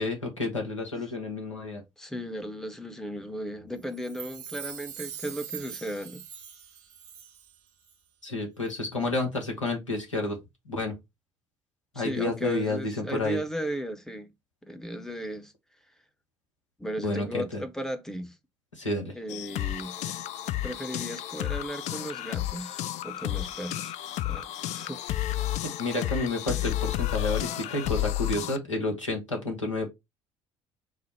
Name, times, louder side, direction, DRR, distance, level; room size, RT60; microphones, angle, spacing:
voice 1, 0.0-1.8 8.2-10.4 10.7-10.9 11.9-13.4 17.0-17.6 18.8-19.1 25.8-29.9, left 2 dB, 85° left, 1.0 m, -30 dB
voice 2, 2.0-6.2 11.9-14.3 14.7-15.5 16.8-18.3 19.1-20.0 20.6-23.9 24.2-25.0, equal, 5° left, 0.7 m, -36 dB
Chime, 3.9-7.6 7.8-7.9, right 8 dB, 50° right, 0.8 m, -42 dB
sound 1, 19.3-28.6, left 14 dB, 50° left, 0.4 m, -32 dB
4.8 x 2.0 x 4.2 m
figure-of-eight pair, 55°, 16 cm